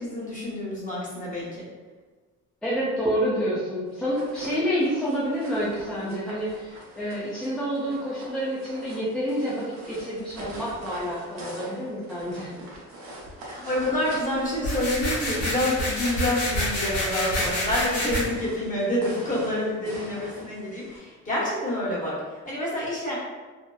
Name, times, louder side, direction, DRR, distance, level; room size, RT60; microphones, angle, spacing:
voice 1, 0.0-1.6 13.4-23.1, left 1 dB, 25° left, -6 dB, 1.0 m, -28 dB
voice 2, 2.6-12.6, equal, 5° left, -8 dB, 0.5 m, -28 dB
sound 1, 3.9-21.0, right 1 dB, 65° right, 0.7 m, -43 dB
sound 2, 14.6-18.2, left 1 dB, 55° left, 0.8 m, -28 dB
2.8 x 2.0 x 2.2 m, 1.4 s
cardioid pair, 90°, 30 cm